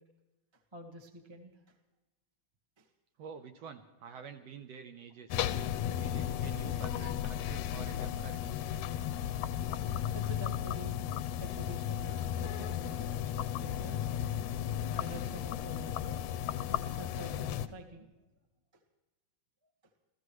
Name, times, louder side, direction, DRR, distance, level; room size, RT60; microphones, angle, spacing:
voice 1, 0.7-1.7 2.8-2.9 9.6-9.7 10.1-11.0 11.4-14.1 14.7-16.2 16.6-18.1, right 1 dB, 15° right, 2 dB, 0.9 m, -48 dB
voice 2, 3.2-5.4 6.0-8.6, right 6 dB, 70° right, 7 dB, 1.6 m, -48 dB
sound 1, 5.3-17.7, left 10 dB, 75° left, 1.8 m, -35 dB
29.0 x 15.0 x 3.1 m, 1.1 s
omnidirectional pair, 3.7 m